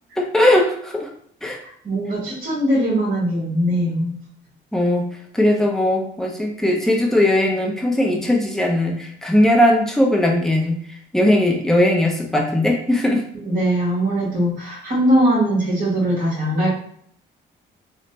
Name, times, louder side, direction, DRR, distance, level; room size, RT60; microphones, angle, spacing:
voice 1, 0.2-1.1 1.4-1.6 4.7-5.0 5.3-10.8 11.1-13.2, left 1 dB, ahead, 0 dB, 0.6 m, -18 dB
voice 2, 1.6-4.2 13.3-16.7, right 1 dB, 45° right, -8 dB, 1.3 m, -21 dB
3.1 x 2.1 x 2.8 m, 0.65 s
cardioid pair, 90°, 20 cm